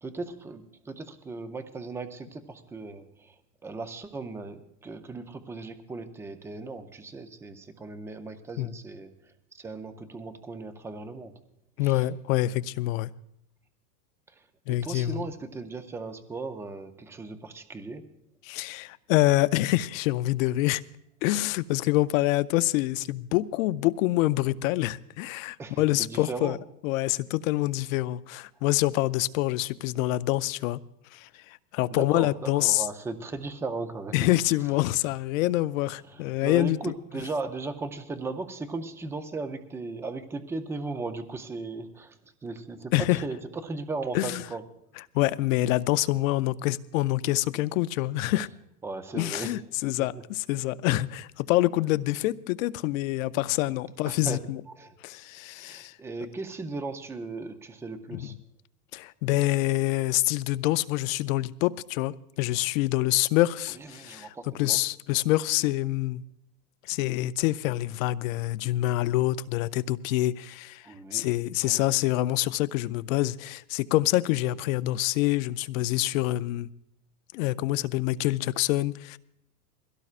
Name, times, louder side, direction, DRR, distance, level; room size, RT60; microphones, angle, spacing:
voice 1, 0.0-3.3 3.6-11.3 11.8-12.0 14.4-14.5 14.8-18.0 25.6-26.6 31.9-34.3 36.1-42.2 42.4-44.6 48.8-49.6 50.0-50.2 54.1-54.4 54.7-55.2 55.6-58.4 63.7-64.8 70.8-71.3 71.6-71.8, right 3 dB, 5° right, 0.4 m, -37 dB
voice 2, 11.8-13.1 14.7-15.2 18.4-20.8 21.2-26.6 26.8-30.8 31.1-32.9 34.1-36.8 42.9-43.2 44.1-44.4 45.1-48.5 49.1-54.6 55.0-56.0 58.1-58.3 58.9-66.2 66.9-70.9 71.1-76.7 77.3-79.2, left 17 dB, 55° left, 0.5 m, -26 dB
21.5 x 16.5 x 2.4 m
supercardioid pair, 135°, 47 cm